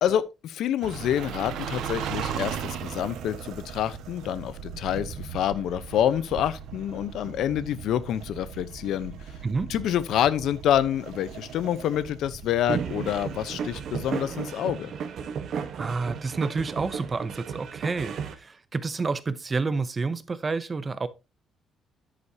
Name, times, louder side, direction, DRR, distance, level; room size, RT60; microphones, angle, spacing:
voice 1, 0.0-9.1 9.7-14.9, left 10 dB, 65° left, 0.8 m, -27 dB
sound 1, 0.8-14.5, right 8 dB, 75° right, 1.4 m, -38 dB
voice 2, 9.4-9.7 15.8-21.1, right 4 dB, 20° right, 0.7 m, -29 dB
sound 2, 12.7-18.3, right 7 dB, 50° right, 1.2 m, -34 dB
9.9 x 9.4 x 2.8 m
cardioid pair, 170°, 0 cm